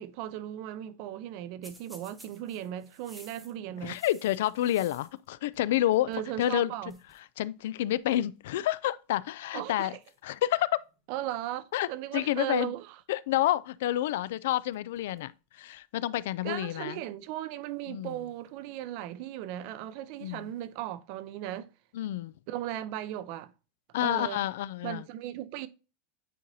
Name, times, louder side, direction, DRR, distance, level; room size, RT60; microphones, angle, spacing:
voice 1, 0.0-4.0 6.1-7.0 9.5-9.9 11.1-12.9 16.4-21.7 22.5-23.5 24.0-24.4 24.8-25.7, right 12 dB, 55° right, 0.5 m, -37 dB
sound 1, 1.6-5.3 5.5-6.3 6.5-6.6 6.9-7.2 8.1-8.4 9.1-9.5 10.0-11.1 14.0-14.2 14.5-15.3 15.7-15.8 16.8-16.9 18.0-18.9 20.1-20.7, equal, 5° right, 1.0 m, -56 dB
voice 2, 3.8-6.1 6.4-6.7 7.4-10.0 10.2-10.7 11.7-11.9 12.1-12.7 13.1-15.3 15.6-17.0 17.9-18.2 20.2-20.5 21.9-22.3 23.9-25.1, left 13 dB, 75° left, 0.3 m, -29 dB
9.1 x 4.0 x 2.7 m
supercardioid pair, 150°, 0 cm